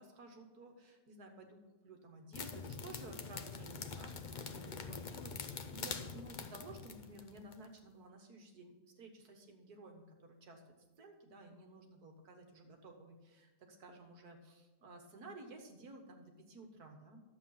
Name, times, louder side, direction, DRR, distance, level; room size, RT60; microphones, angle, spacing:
voice 1, 0.0-5.3 5.7-10.6 11.0-17.2, right 2 dB, 65° right, 4 dB, 1.8 m, -54 dB
sound 1, 2.3-7.6, left 5 dB, 80° left, 0.4 m, -45 dB
11.5 x 7.7 x 5.7 m, 1.2 s
omnidirectional pair, 1.8 m